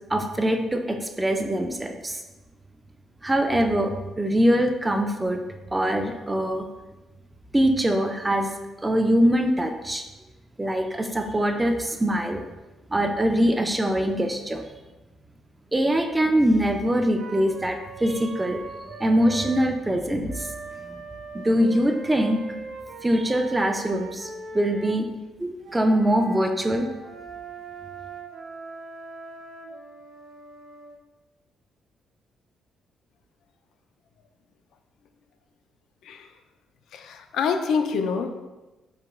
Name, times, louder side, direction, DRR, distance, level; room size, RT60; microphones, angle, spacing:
voice 1, 0.1-2.2 3.2-5.4 5.7-6.7 7.5-8.5 8.8-10.0 10.6-12.4 12.9-14.6 15.7-18.6 19.0-20.5 20.9-21.0 21.3-22.4 23.0-24.3 24.5-25.1 25.4-26.9, right 1 dB, 10° right, 5 dB, 0.3 m, -23 dB
Wind instrument woodwind instrument, 17.2-19.7 20.3-25.0 25.6-31.0, right 4 dB, 75° right, 0.6 m, -40 dB
voice 2, 36.9-38.4, left 5 dB, 75° left, 7 dB, 0.3 m, -26 dB
4.7 x 2.2 x 3.6 m, 1.1 s
cardioid pair, 140°, 0 cm